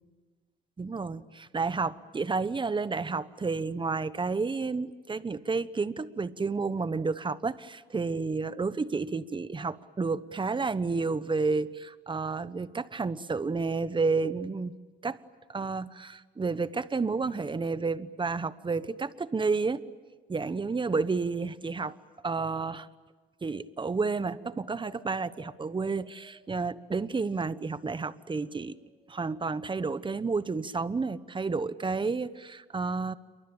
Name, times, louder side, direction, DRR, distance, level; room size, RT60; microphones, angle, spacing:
voice 1, 0.8-14.7 15.0-15.2 15.5-19.8 20.3-21.9 22.2-22.9 23.4-28.8 29.1-33.1, right 4 dB, 25° right, 15 dB, 1.1 m, -31 dB
Wind, 24.2-27.7 28.3-29.3 30.1-30.2, left 1 dB, 50° left, 5.5 m, -60 dB
28.5 x 23.5 x 8.9 m, 1.4 s
cardioid pair, 90°, 20 cm